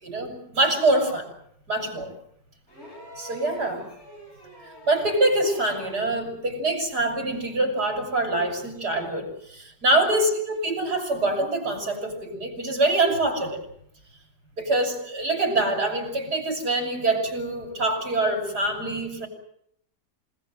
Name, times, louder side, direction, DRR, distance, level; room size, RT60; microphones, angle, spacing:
voice 1, 0.0-1.3 1.7-2.1 3.2-3.9 4.6-13.6 14.6-19.3, right 2 dB, 60° right, 4 dB, 7.0 m, -25 dB
sound 1, 2.7-6.2 7.6-7.7, equal, 35° left, 8.2 m, -45 dB
28.5 x 18.5 x 8.1 m, 0.74 s
omnidirectional pair, 1.9 m